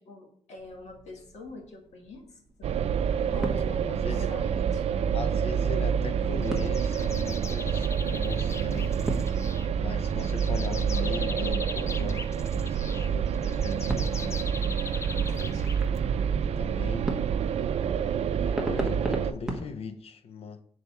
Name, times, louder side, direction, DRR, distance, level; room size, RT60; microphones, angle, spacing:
voice 1, 0.0-2.7 3.3-5.1 15.2-15.8, left 2 dB, 80° left, 1.6 m, -45 dB
sound 1, 0.6-19.7, right 1 dB, 5° right, 1.0 m, -41 dB
sound 2, 2.6-19.3, right 7 dB, 70° right, 0.4 m, -28 dB
voice 2, 3.6-4.3 5.1-9.0 9.8-14.5 16.4-17.1 18.4-20.6, left 5 dB, 60° left, 0.7 m, -39 dB
sound 3, 6.4-16.2, left 4 dB, 25° left, 0.3 m, -41 dB
6.4 x 4.1 x 5.6 m
wide cardioid pair, 165°, 11 cm